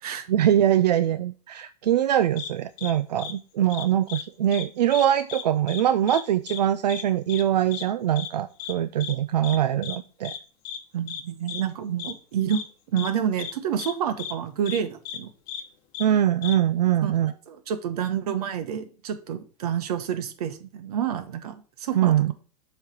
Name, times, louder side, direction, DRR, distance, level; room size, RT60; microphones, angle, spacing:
voice 1, 0.3-10.3 16.0-17.3 22.0-22.3, right 11 dB, 90° right, 12 dB, 0.4 m, -23 dB
sound 1, 2.4-2.5 2.8-2.9 3.2-3.3 3.7-4.2 4.5-4.6 4.9-5.4 5.7-5.8 6.1-6.2 6.5-6.6 6.9-7.0 7.3-7.4 7.7-7.8 8.2-8.3 8.6-8.7 9.0-9.1 9.4-9.6 9.8-10.0 10.2-10.4 10.6-10.8 11.1-11.2 11.5-11.6 12.0-12.1 12.5-12.6 13.0-13.1 13.4-13.5 13.8-13.9 14.2-14.3 14.7-14.8 15.1-15.2 15.5-15.6 15.9-16.1 16.4-16.5, left 9 dB, 40° left, 1.0 m, -35 dB
voice 2, 10.9-12.6 12.9-15.3 17.0-22.3, right 9 dB, 65° right, 9 dB, 1.1 m, -29 dB
7.2 x 3.3 x 5.1 m, 0.38 s
hypercardioid pair, 135°, 20 cm